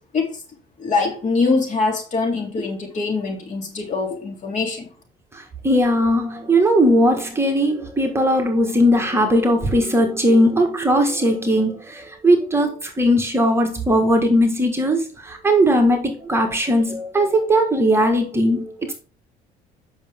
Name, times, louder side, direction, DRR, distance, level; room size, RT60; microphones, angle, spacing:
voice 1, 0.8-4.8, left 4 dB, 45° left, 3.3 m, -23 dB
voice 2, 5.6-18.9, equal, 15° right, 1.7 m, -18 dB
8.2 x 6.3 x 3.6 m
cardioid pair, 110°, 17 cm